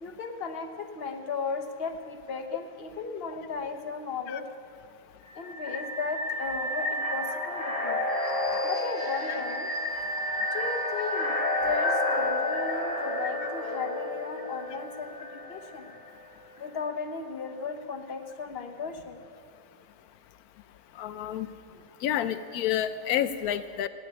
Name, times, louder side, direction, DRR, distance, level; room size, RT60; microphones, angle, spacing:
voice 1, 0.0-4.4 5.3-8.0 8.6-9.7 10.5-11.4 11.6-15.9 16.6-19.2 21.7-21.8, left 5 dB, 45° left, 6 dB, 1.2 m, -36 dB
sound 1, 5.3-16.1, left 1 dB, 25° left, 1.5 m, -30 dB
voice 2, 21.0-21.5 22.0-23.9, left 10 dB, 90° left, 12 dB, 1.1 m, -29 dB
16.0 x 8.6 x 9.6 m, 2.4 s
omnidirectional pair, 1.5 m